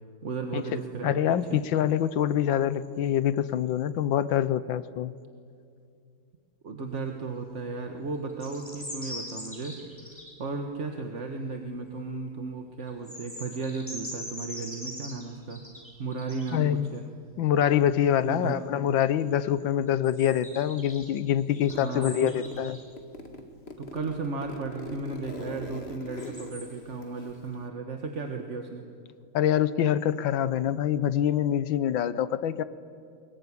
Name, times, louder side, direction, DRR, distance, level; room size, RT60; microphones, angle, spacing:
voice 1, 0.2-1.1 1.5-1.6 6.6-9.8 10.0-15.6 16.0-17.0 18.2-18.6 21.7-22.3 23.8-28.8, right 4 dB, 40° right, 4 dB, 1.6 m, -35 dB
voice 2, 1.0-5.1 16.5-16.9 17.4-22.8 29.3-32.6, left 10 dB, 70° left, 15 dB, 1.6 m, -25 dB
sound 1, 8.3-10.3 12.9-16.6 20.0-22.8 26.2-26.6, equal, 5° left, 6.7 m, -41 dB
Zipper (clothing), 21.6-22.7 23.0-27.7, left 1 dB, 30° left, 2.1 m, -41 dB
24.5 x 22.0 x 9.8 m, 2.4 s
omnidirectional pair, 2.3 m